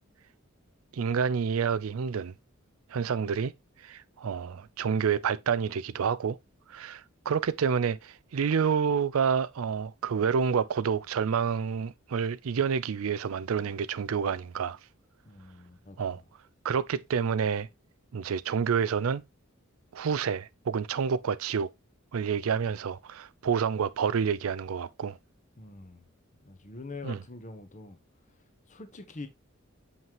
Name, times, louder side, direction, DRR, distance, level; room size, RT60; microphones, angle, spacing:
voice 1, 0.9-2.3 2.9-3.5 3.8-6.4 6.7-14.8 16.0-16.2 16.6-17.7 18.1-19.2 19.9-21.7 22.1-25.2 27.0-27.2, right 6 dB, 85° right, 0.4 m, -28 dB
voice 2, 15.2-16.2 25.6-26.0 26.4-28.0 28.7-29.3, left 3 dB, 35° left, 1.1 m, -44 dB
7.4 x 5.6 x 2.9 m
head